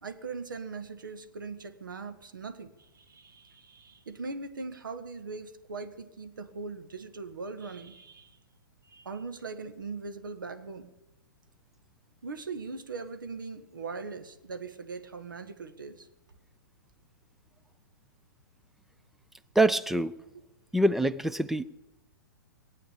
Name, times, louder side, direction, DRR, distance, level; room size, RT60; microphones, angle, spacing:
voice 1, 0.0-8.4 8.9-10.9 12.2-16.1, right 4 dB, 75° right, 1.6 m, -40 dB
voice 2, 19.6-20.2 20.7-21.6, right 1 dB, ahead, 0.4 m, -25 dB
19.0 x 8.5 x 8.6 m
figure-of-eight pair, 115°, 11 cm